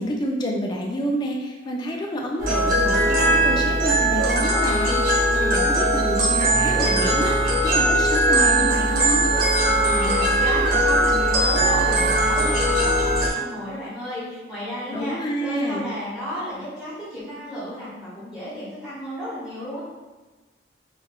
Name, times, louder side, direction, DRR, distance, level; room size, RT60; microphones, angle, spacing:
voice 1, 0.0-5.0 5.3-7.3 7.6-9.3 14.9-15.9, equal, 25° left, -1 dB, 0.3 m, -28 dB
sound 1, 2.4-13.3, right 1 dB, 50° right, 0.6 m, -20 dB
voice 2, 9.9-19.8, equal, ahead, -13 dB, 0.8 m, -32 dB
3.4 x 2.2 x 2.3 m, 1.2 s
head